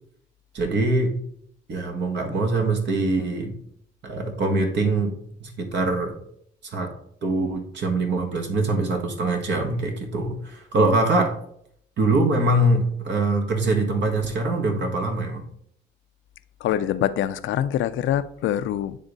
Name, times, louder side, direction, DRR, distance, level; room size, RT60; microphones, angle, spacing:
voice 1, 0.5-1.1 1.7-3.6 4.0-6.1 6.7-6.9 7.2-11.3 12.0-15.4, right 2 dB, 60° right, 1.5 m, -23 dB
voice 2, 16.6-19.0, left 11 dB, 75° left, 0.5 m, -24 dB
9.2 x 3.5 x 4.0 m
cardioid pair, 90°, 20 cm